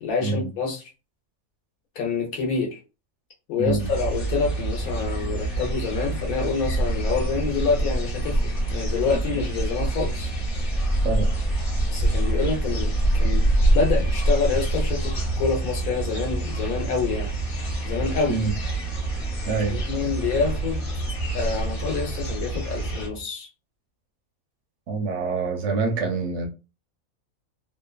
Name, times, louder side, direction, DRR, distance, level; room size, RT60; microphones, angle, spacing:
voice 1, 0.0-0.8 2.0-2.8 3.5-8.4 8.7-10.3 11.9-17.3 17.8-18.4 19.7-20.9 21.3-23.5, left 5 dB, 80° left, 1.2 m, -27 dB
sound 1, 3.6-23.2, right 2 dB, 10° right, 0.4 m, -35 dB
voice 2, 3.6-3.9 11.0-11.3 18.3-18.5 19.5-19.8 24.9-26.5, right 4 dB, 65° right, 0.8 m, -26 dB
sound 2, 3.8-23.1, right 1 dB, 45° left, 1.0 m, -26 dB
2.8 x 2.2 x 2.2 m
omnidirectional pair, 1.5 m